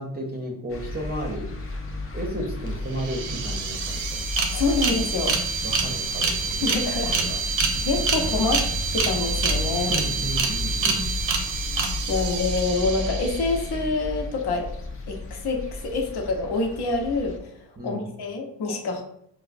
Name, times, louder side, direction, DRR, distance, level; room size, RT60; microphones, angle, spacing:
voice 1, 0.0-1.5 2.1-4.2 5.6-6.7 7.1-7.4 7.7-7.9 9.8-11.1 17.8-18.0, right 1 dB, 20° right, -2 dB, 0.6 m, -33 dB
sound 1, 0.7-17.4, left 3 dB, 30° left, 0.5 m, -33 dB
sound 2, 2.7-2.8 2.9-13.8, right 5 dB, 85° right, 0.7 m, -27 dB
voice 2, 4.5-5.4 6.6-7.2 7.8-8.6 8.9-10.0 10.8-11.1 12.1-14.7 15.1-17.5 17.8-19.0, left 3 dB, 60° left, 2 dB, 0.8 m, -26 dB
4.4 x 2.1 x 2.5 m, 0.74 s
cardioid pair, 80°, 45 cm